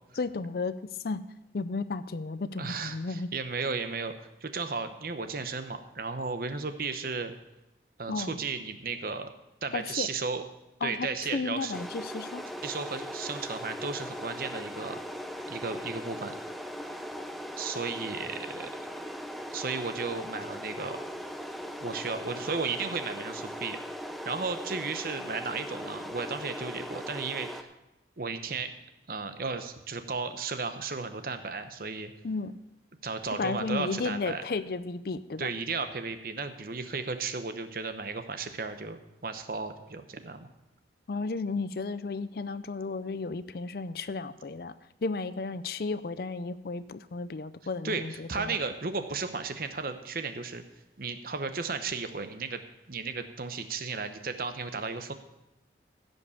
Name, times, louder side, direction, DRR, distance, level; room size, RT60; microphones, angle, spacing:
voice 1, 0.2-1.2 1.5-3.3 8.1-8.4 9.7-10.1 10.8-12.4 32.2-32.5 33.3-35.5 41.1-44.7 45.0-48.6, left 3 dB, 55° left, 14 dB, 0.5 m, -33 dB
voice 2, 2.6-7.3 8.0-9.3 9.6-10.4 10.8-11.7 12.6-15.0 15.5-16.3 17.6-18.7 19.5-21.0 21.8-23.8 24.2-27.7 28.2-28.7 29.1-32.1 33.0-34.4 35.4-40.5 47.8-48.0 48.3-50.6 51.0-52.6 52.9-55.1, right 4 dB, 50° right, 8 dB, 0.8 m, -34 dB
sound 1, 11.7-27.6, equal, ahead, 0.5 m, -39 dB
16.0 x 5.4 x 6.9 m, 0.94 s
head